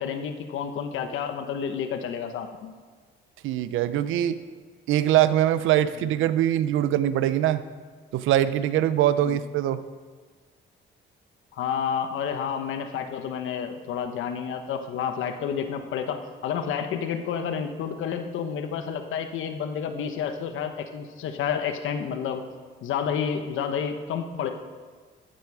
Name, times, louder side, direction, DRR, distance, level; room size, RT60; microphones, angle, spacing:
voice 1, 0.0-2.7 9.2-9.4 11.5-22.4 22.8-24.5, left 7 dB, 80° left, 7 dB, 1.2 m, -30 dB
voice 2, 3.4-4.4 4.9-7.6 8.1-9.8, right 12 dB, 90° right, 14 dB, 0.7 m, -22 dB
13.5 x 13.0 x 4.9 m, 1.5 s
cardioid pair, 90°, 20 cm